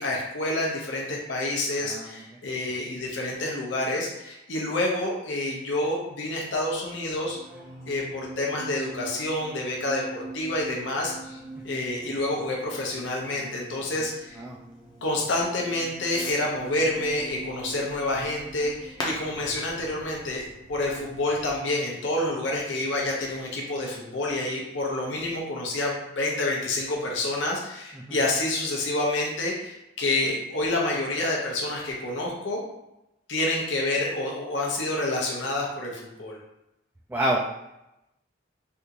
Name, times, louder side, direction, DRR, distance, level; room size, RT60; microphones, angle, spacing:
voice 1, 0.0-7.4 7.9-11.4 11.6-14.4 15.0-20.4 20.7-32.6 33.3-36.4, left 2 dB, 70° left, -2 dB, 0.7 m, -28 dB
sound 1, 7.1-23.8 24.0-24.3, right 2 dB, 45° right, 0.7 m, -45 dB
Fireworks, 10.2-21.6, left 1 dB, 25° left, 0.6 m, -44 dB
voice 2, 37.1-37.4, right 1 dB, 10° right, -4 dB, 0.3 m, -27 dB
3.4 x 2.5 x 2.8 m, 0.89 s
head